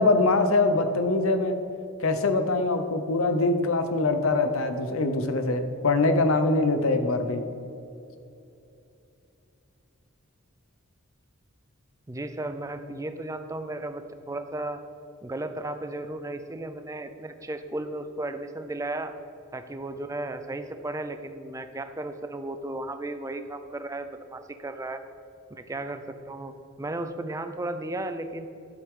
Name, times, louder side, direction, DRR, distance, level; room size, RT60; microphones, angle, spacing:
voice 1, 0.0-1.5 2.0-7.4, left 2 dB, 75° left, 7 dB, 0.8 m, -23 dB
voice 2, 12.1-14.8 15.2-19.1 19.5-25.0 25.5-26.5 26.8-28.5, right 2 dB, 15° right, 8 dB, 0.5 m, -34 dB
11.5 x 8.0 x 3.8 m, 2.7 s
head